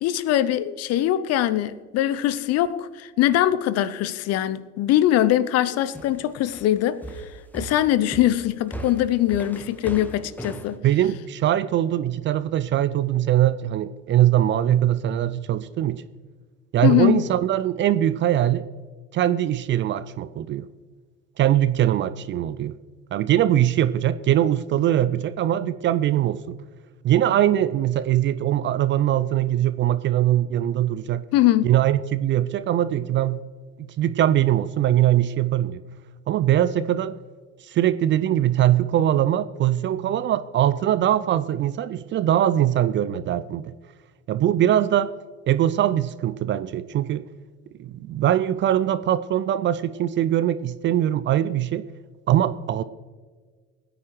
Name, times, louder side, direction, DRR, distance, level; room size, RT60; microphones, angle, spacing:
voice 1, 0.0-7.0 7.5-10.8 16.8-17.2 31.3-31.7, left 13 dB, 45° left, 0.7 m, -22 dB
sound 1, 5.9-10.7, right 1 dB, 5° left, 1.4 m, -38 dB
voice 2, 10.8-16.0 16.7-18.7 19.1-20.7 21.4-22.7 23.1-26.6 27.0-31.2 31.6-33.4 33.8-35.8 36.3-37.1 37.6-43.7 44.3-45.1 45.5-47.2 47.8-51.9 52.3-52.8, right 12 dB, 30° right, 0.5 m, -22 dB
21.5 x 9.6 x 3.2 m
figure-of-eight pair, 60°, 36 cm